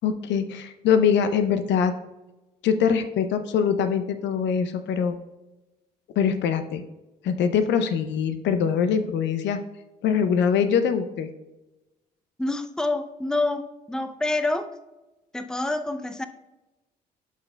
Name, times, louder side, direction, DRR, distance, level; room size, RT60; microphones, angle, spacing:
voice 1, 0.0-1.9 2.6-5.2 6.2-6.8 7.2-9.6 10.0-11.3, left 7 dB, 60° left, 10 dB, 0.6 m, -23 dB
voice 2, 12.4-14.7 15.3-16.3, left 2 dB, 5° left, 9 dB, 0.6 m, -27 dB
11.5 x 5.8 x 2.3 m, 1.0 s
hypercardioid pair, 45°, 21 cm